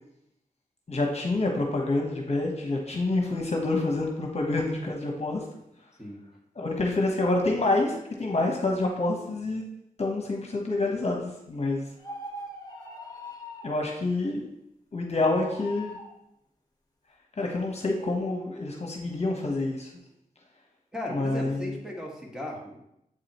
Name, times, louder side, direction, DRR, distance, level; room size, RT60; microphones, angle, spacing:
voice 1, 0.9-5.4 6.6-9.6 10.0-11.8 13.6-14.4 14.9-16.0 17.4-19.9 21.1-21.6, left 2 dB, 50° left, 1 dB, 1.0 m, -27 dB
sound 1, 12.0-13.8 15.1-16.1, left 1 dB, 25° left, 1.2 m, -41 dB
voice 2, 20.9-22.8, left 1 dB, 5° right, -2 dB, 1.6 m, -36 dB
7.6 x 4.9 x 3.0 m, 0.80 s
wide cardioid pair, 75°, 15 cm